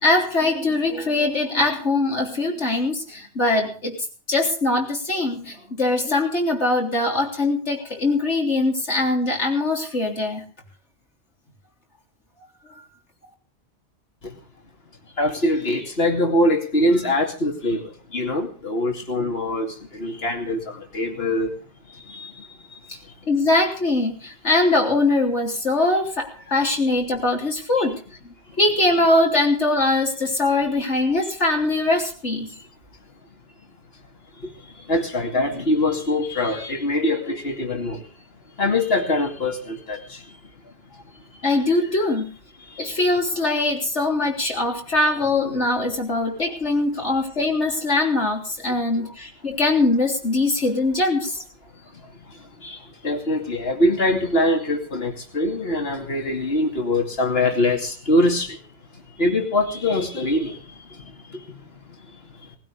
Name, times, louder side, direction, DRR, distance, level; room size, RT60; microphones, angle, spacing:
voice 1, 0.0-4.0 4.3-10.5 23.3-28.0 28.2-32.5 41.4-42.3 42.8-51.4, left 2 dB, 75° left, 1 dB, 3.9 m, -22 dB
voice 2, 15.2-21.5 21.9-23.1 26.5-26.6 27.8-27.9 34.4-38.1 38.6-40.4 42.7-42.9 52.3-58.6 58.9-61.5 62.4-62.5, left 1 dB, 60° left, 4 dB, 2.8 m, -24 dB
19.0 x 16.0 x 3.6 m, 0.38 s
omnidirectional pair, 1.2 m